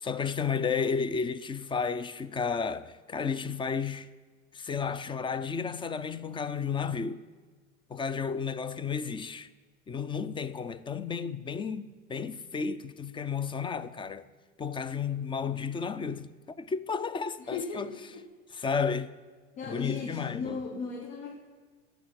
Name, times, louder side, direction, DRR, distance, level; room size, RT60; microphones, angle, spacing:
voice 1, 0.0-4.1 4.5-7.2 7.9-9.5 9.9-14.2 14.6-17.9 18.5-19.1 19.6-20.6, left 6 dB, 15° left, 0.3 m, -32 dB
voice 2, 17.4-18.2 19.6-21.3, left 4 dB, 75° left, 1.4 m, -37 dB
10.5 x 7.9 x 7.4 m
hypercardioid pair, 85°, 40 cm